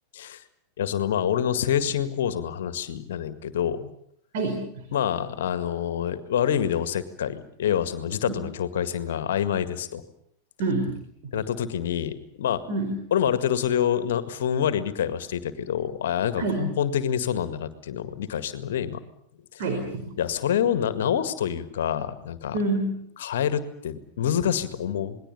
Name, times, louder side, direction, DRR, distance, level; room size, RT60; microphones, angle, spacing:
voice 1, 0.1-0.4 0.8-3.9 4.9-10.0 11.3-12.6 13.1-19.0 19.5-19.6 20.2-22.6 23.2-25.2, left 9 dB, 60° left, 12 dB, 1.9 m, -27 dB
voice 2, 4.3-4.9 8.2-8.3 10.6-10.9 12.7-12.9 16.4-16.7 19.6-20.1 22.5-23.0, right 2 dB, 50° right, 4 dB, 4.6 m, -27 dB
28.0 x 20.5 x 7.1 m, 0.68 s
figure-of-eight pair, 90°, 0 cm